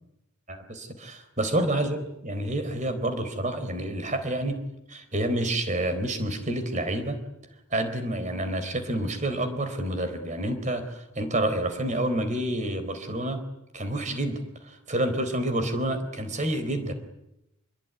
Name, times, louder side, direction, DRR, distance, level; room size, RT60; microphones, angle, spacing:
voice 1, 0.5-4.6 4.9-7.2 7.7-13.4 13.7-16.9, right 1 dB, 35° right, 10 dB, 4.0 m, -28 dB
27.0 x 22.0 x 9.7 m, 0.87 s
head